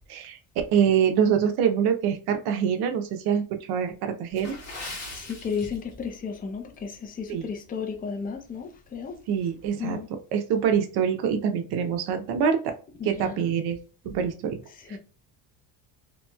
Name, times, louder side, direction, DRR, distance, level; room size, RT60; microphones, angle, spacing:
voice 1, 0.7-4.6 7.3-7.4 9.3-10.0 10.3-12.7 13.1-13.8 14.0-14.6 14.9-15.0, right 7 dB, 70° right, 0.6 m, -25 dB
Water / Splash splatter, 4.3-6.2 6.5-6.7 7.3-7.5 8.0-8.1, left 2 dB, 40° left, 1.5 m, -40 dB
voice 2, 5.1-9.2 9.8-10.1 13.0-13.5 14.7-15.0, left 6 dB, 20° left, 0.5 m, -33 dB
3.0 x 2.9 x 2.2 m
cardioid pair, 130°, 40 cm